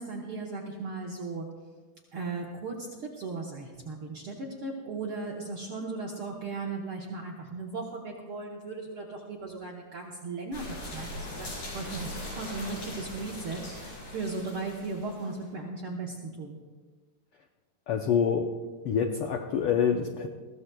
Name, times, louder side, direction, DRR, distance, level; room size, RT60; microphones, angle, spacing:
voice 1, 0.0-1.5 2.1-16.6, right 3 dB, 60° right, -2 dB, 1.6 m, -37 dB
sound 1, 10.5-15.4, left 1 dB, 65° left, 5.6 m, -40 dB
voice 2, 17.9-18.5 18.8-20.3, left 7 dB, 85° left, 3 dB, 1.2 m, -26 dB
20.5 x 15.5 x 2.3 m, 1.4 s
omnidirectional pair, 3.4 m